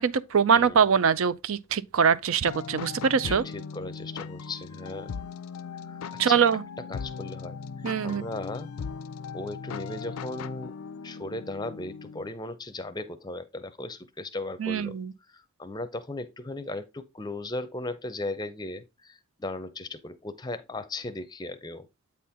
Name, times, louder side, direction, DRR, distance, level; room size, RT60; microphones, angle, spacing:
voice 1, 0.0-3.4 6.2-6.6 7.8-8.2 14.6-15.1, right 6 dB, 70° right, 0.5 m, -23 dB
sound 1, 2.4-12.3, left 5 dB, 80° left, 0.4 m, -38 dB
voice 2, 3.2-5.1 5.8-6.4 6.9-7.6 8.0-8.7 9.3-10.7 11.0-15.0 15.3-21.9, left 2 dB, 20° left, 0.5 m, -37 dB
8.4 x 4.3 x 3.6 m
head